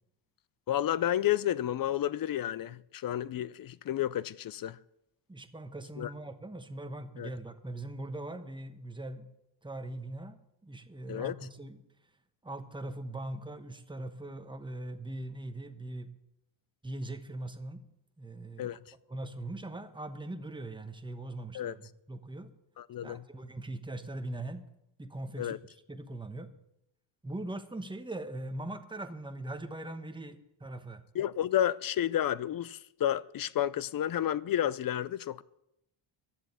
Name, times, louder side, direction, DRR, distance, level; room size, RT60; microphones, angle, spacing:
voice 1, 0.7-4.8 6.0-6.1 7.2-7.3 11.1-11.3 18.6-18.8 21.5-21.7 22.8-23.2 25.4-25.6 31.1-35.4, left 11 dB, 45° left, 0.5 m, -31 dB
voice 2, 5.3-9.3 9.6-10.4 10.6-11.8 12.4-16.1 16.8-17.8 18.2-18.7 19.1-22.5 23.0-24.7 25.0-25.6 25.9-26.5 27.2-31.0, right 1 dB, 10° right, 1.1 m, -41 dB
11.0 x 7.6 x 9.6 m
cardioid pair, 115°, 50 cm